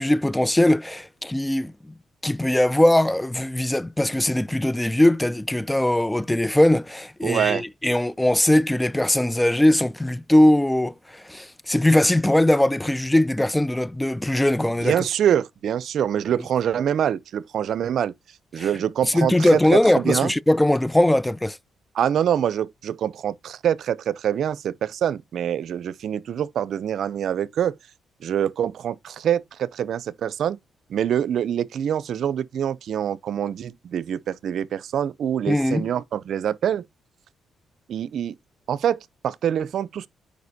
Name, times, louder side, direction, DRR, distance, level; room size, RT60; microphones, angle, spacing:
voice 1, 0.0-1.9 2.2-15.0 18.6-18.7 19.1-21.6 35.5-35.8, left 1 dB, 10° left, 0.3 m, -20 dB
voice 2, 7.2-7.6 14.6-18.1 18.5-20.3 21.9-27.7 28.2-30.6 30.9-36.8 37.9-38.3 38.7-40.1, right 9 dB, 65° right, 0.5 m, -25 dB
9.3 x 5.1 x 2.7 m
cardioid pair, 90°, 0 cm